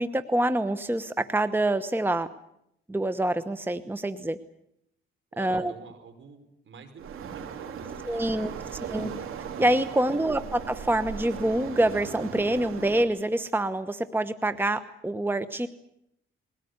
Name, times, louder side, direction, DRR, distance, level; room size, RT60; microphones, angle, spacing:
voice 1, 0.0-2.3 2.9-4.4 5.4-5.7 8.1-8.5 8.9-9.1 9.6-15.7, right 1 dB, 10° right, 12 dB, 1.0 m, -26 dB
voice 2, 5.3-9.2 9.9-10.5, right 5 dB, 65° right, 6 dB, 5.4 m, -49 dB
Waves surf, 7.0-13.1, right 7 dB, 80° right, 3.8 m, -38 dB
21.5 x 18.0 x 9.5 m, 0.78 s
cardioid pair, 85°, 21 cm